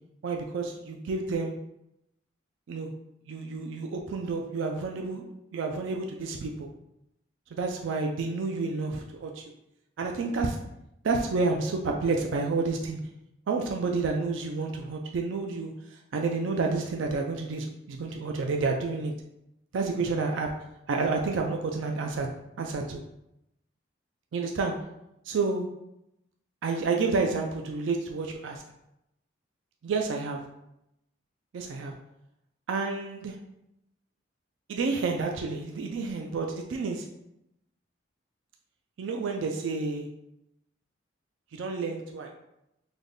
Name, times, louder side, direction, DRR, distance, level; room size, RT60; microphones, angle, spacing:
voice 1, 0.2-1.5 2.7-2.9 3.3-6.7 7.5-9.4 10.0-10.6 11.0-13.0 13.5-19.1 19.7-20.5 20.9-22.3 22.6-23.0 24.3-24.8 25.3-25.7 26.6-28.6 29.8-30.4 31.5-31.9 32.7-33.4 34.7-37.0 39.0-40.1 41.5-42.3, right 4 dB, 75° right, 2 dB, 0.4 m, -30 dB
3.3 x 2.2 x 3.8 m, 0.84 s
head